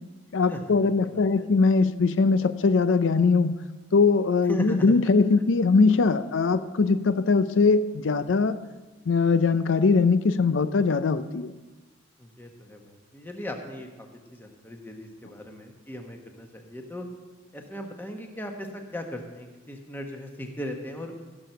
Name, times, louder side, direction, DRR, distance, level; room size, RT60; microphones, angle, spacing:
voice 1, 0.3-3.6 3.9-8.6 9.1-11.5, left 4 dB, 85° left, 12 dB, 0.5 m, -21 dB
voice 2, 1.1-1.5 4.5-4.9 12.2-17.1 17.5-21.1, equal, 10° left, 3 dB, 1.2 m, -38 dB
16.0 x 6.1 x 6.7 m, 1.2 s
head